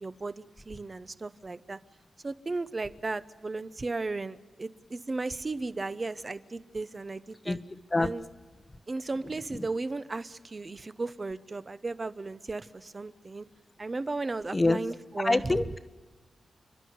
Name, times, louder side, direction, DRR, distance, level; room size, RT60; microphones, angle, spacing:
voice 1, 0.0-1.8 2.2-7.6 8.0-8.2 8.9-13.5 13.8-15.6, right 3 dB, 35° right, 13 dB, 0.8 m, -35 dB
voice 2, 15.2-15.8, left 2 dB, 25° left, 12 dB, 1.0 m, -25 dB
30.0 x 11.5 x 9.4 m, 1.4 s
cardioid pair, 90°, 0 cm